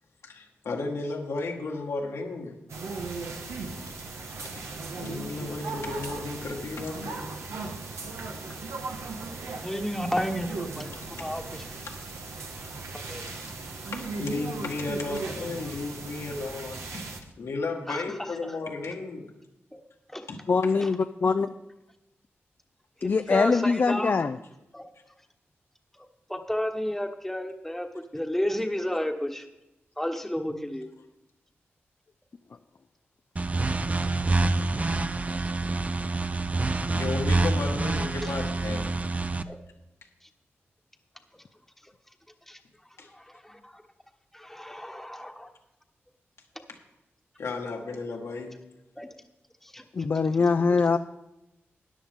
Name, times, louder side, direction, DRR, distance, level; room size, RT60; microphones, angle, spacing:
voice 1, 0.2-2.6 3.6-3.8 4.4-4.5 4.9-7.3 8.5-8.6 10.9-11.3 11.9-12.0 13.3-13.5 13.9-17.0 17.4-19.3 20.3-20.4 20.6-20.8 24.9-25.0 36.9-39.0 43.0-43.1 47.4-48.6, left 3 dB, 85° left, 0 dB, 1.9 m, -34 dB
sound 1, 2.7-17.2, right 3 dB, 90° right, 1.3 m, -37 dB
voice 2, 9.6-10.9 11.2-11.6 12.9-13.3 17.9-18.1 19.7-19.8 20.1-20.3 20.8-20.9 21.4-21.5 23.0-24.1 24.7-24.9 25.9-29.5 30.0-30.9 36.7-37.0 39.5-39.6 41.8-41.9 42.5-42.6 43.0-43.8 44.3-45.5 49.0-49.1 49.6-49.8 50.1-50.4 50.9-51.0, equal, 5° left, 4 dB, 1.3 m, -32 dB
voice 3, 20.5-21.5 23.0-24.4 49.9-51.0, left 4 dB, 50° left, 9 dB, 0.4 m, -23 dB
sound 2, 33.4-39.4, right 3 dB, 30° right, 0.6 m, -27 dB
13.5 x 10.0 x 3.7 m, 0.92 s
cardioid pair, 60°, 5 cm